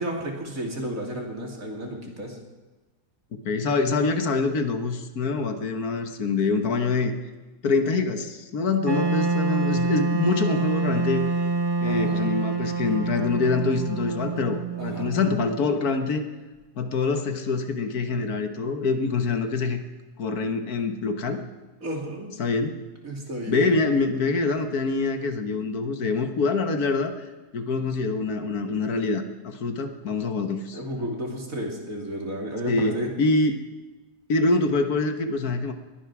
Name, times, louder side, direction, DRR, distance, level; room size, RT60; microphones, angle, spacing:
voice 1, 0.0-2.4 11.8-12.3 14.8-15.1 21.8-22.3 23.0-23.6 30.7-33.1, equal, 55° right, 0 dB, 3.1 m, -32 dB
voice 2, 3.5-7.1 7.6-11.3 11.8-16.3 16.8-19.8 20.2-21.4 22.4-22.8 23.5-27.1 27.5-31.1 32.7-33.6 34.3-35.7, left 3 dB, 70° left, 6 dB, 1.7 m, -25 dB
Wind instrument woodwind instrument, 8.8-15.8, right 3 dB, 20° right, 0.9 m, -26 dB
20.0 x 11.5 x 6.0 m, 1.2 s
omnidirectional pair, 1.7 m